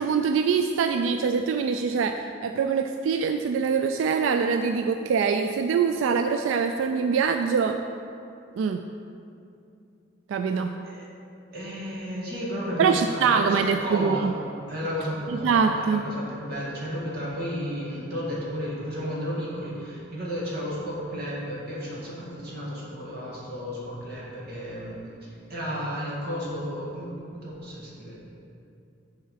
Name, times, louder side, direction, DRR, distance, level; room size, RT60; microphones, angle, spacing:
voice 1, 0.0-2.2 2.4-7.8 8.6-8.8 10.3-10.7 12.8-14.3 15.4-16.0, right 6 dB, 85° right, 7 dB, 0.3 m, -24 dB
voice 2, 11.5-14.3 14.7-28.2, equal, 55° right, -5 dB, 1.8 m, -33 dB
7.5 x 4.7 x 5.7 m, 2.6 s
head